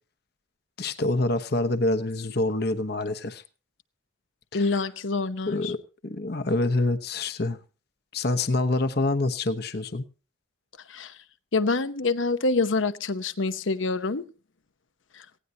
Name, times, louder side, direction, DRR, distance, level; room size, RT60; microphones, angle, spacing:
voice 1, 0.8-3.4 4.5-4.7 5.5-5.8 6.0-7.6 8.1-10.0, left 2 dB, 55° left, 1.0 m, -26 dB
voice 2, 4.5-5.7 10.9-11.1 11.5-14.2, left 3 dB, 80° left, 0.9 m, -26 dB
18.0 x 17.0 x 2.8 m
head